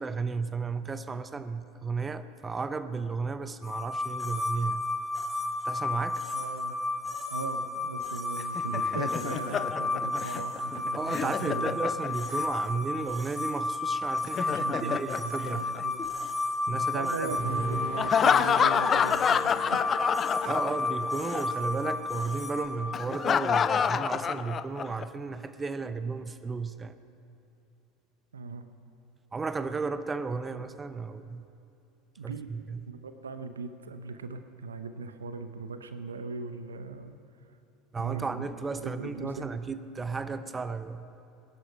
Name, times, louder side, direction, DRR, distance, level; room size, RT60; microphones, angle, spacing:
voice 1, 0.0-4.9 5.6-6.2 10.9-15.7 16.7-17.9 20.4-27.0 29.3-31.4 32.2-32.8 37.9-41.2, right 4 dB, 20° right, 0.7 m, -34 dB
sound 1, 3.6-22.7, left 2 dB, 5° left, 2.6 m, -32 dB
voice 2, 6.3-6.7 7.3-11.9 14.4-15.0 15.4-16.0 16.7-19.8 28.3-28.6 32.2-32.5 32.9-37.2 38.0-39.5, right 4 dB, 80° right, 0.7 m, -39 dB
Laughter, 8.4-12.4 14.1-16.3 18.0-21.0 21.3-21.4 22.9-25.0, left 7 dB, 30° left, 0.4 m, -28 dB
sound 2, 17.3-25.2 25.6-25.9, left 4 dB, 70° left, 4.9 m, -43 dB
20.0 x 11.0 x 5.7 m
figure-of-eight pair, 75°, 0 cm